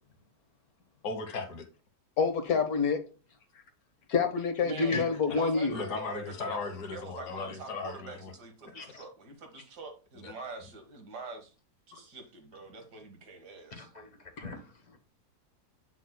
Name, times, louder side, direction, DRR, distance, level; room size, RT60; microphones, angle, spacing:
voice 1, 1.0-1.7 4.9-5.0 5.3-5.4 5.7-8.3 10.2-10.3, left 4 dB, 85° left, 2.0 m, -37 dB
voice 2, 2.2-3.0 4.1-5.7, left 5 dB, 65° left, 1.7 m, -27 dB
voice 3, 4.6-11.5 11.9-13.9, right 3 dB, 80° right, 2.0 m, -44 dB
voice 4, 13.7-15.0, left 4 dB, 30° left, 1.3 m, -42 dB
7.8 x 7.1 x 2.2 m
omnidirectional pair, 1.7 m